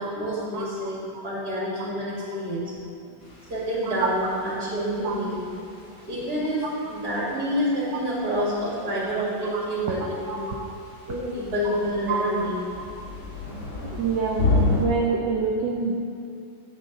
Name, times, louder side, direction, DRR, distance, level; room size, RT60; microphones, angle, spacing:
voice 1, 0.0-1.0 1.2-2.7 3.0-3.1 3.5-5.4 6.0-10.6 11.1-12.6, equal, 45° right, -6 dB, 2.8 m, -28 dB
sound 1, 3.2-14.8, left 3 dB, 50° left, 2.2 m, -33 dB
voice 2, 13.8-14.5 14.7-16.0, right 5 dB, 65° right, -2 dB, 1.3 m, -26 dB
9.4 x 8.4 x 4.1 m, 2.4 s
omnidirectional pair, 2.4 m